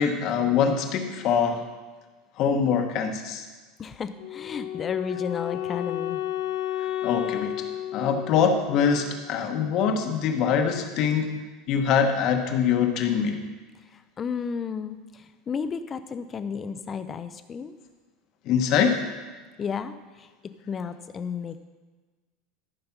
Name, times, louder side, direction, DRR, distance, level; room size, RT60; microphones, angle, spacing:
voice 1, 0.0-1.6 2.4-3.5 7.0-7.6 7.9-13.4 18.4-19.0, left 7 dB, 40° left, 5 dB, 1.1 m, -24 dB
voice 2, 3.8-6.2 13.9-17.7 19.6-20.3 20.7-21.6, left 6 dB, 20° left, 12 dB, 0.5 m, -33 dB
Wind instrument woodwind instrument, 4.2-9.2, left 12 dB, 60° left, 0.7 m, -32 dB
13.5 x 5.2 x 5.9 m, 1.3 s
supercardioid pair, 170°, 0 cm